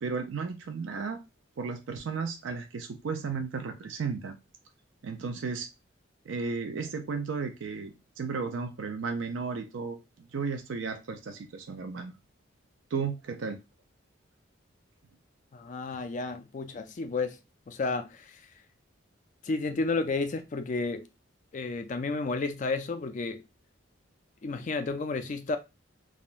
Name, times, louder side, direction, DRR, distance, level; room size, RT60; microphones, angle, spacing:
voice 1, 0.0-1.2 1.6-4.4 5.0-5.7 6.3-12.1 12.9-13.6, right 5 dB, 70° right, 0.4 m, -34 dB
voice 2, 15.5-17.4 17.7-18.5 19.4-21.1 21.5-23.4 24.4-25.6, left 3 dB, 40° left, 0.3 m, -32 dB
3.5 x 2.2 x 2.4 m
head